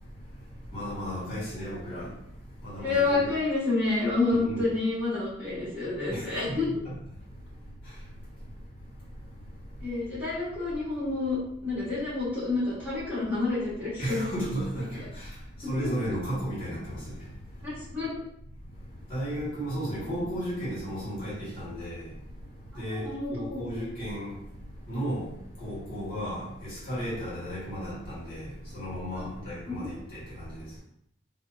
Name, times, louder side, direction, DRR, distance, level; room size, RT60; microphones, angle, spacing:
voice 1, 0.0-3.2 4.3-4.6 6.1-6.6 6.8-6.9 7.2-8.6 9.0-9.9 14.0-17.8 18.6-30.8, equal, 30° left, 1.4 m, -35 dB
voice 2, 2.8-6.7 9.8-11.4 11.6-14.2 14.7-14.9 15.6-15.9 17.6-18.2 20.0-20.2 22.7-23.6 29.1-29.3 29.6-30.0, left 3 dB, 10° right, 1.2 m, -29 dB
2.7 x 2.0 x 2.2 m
head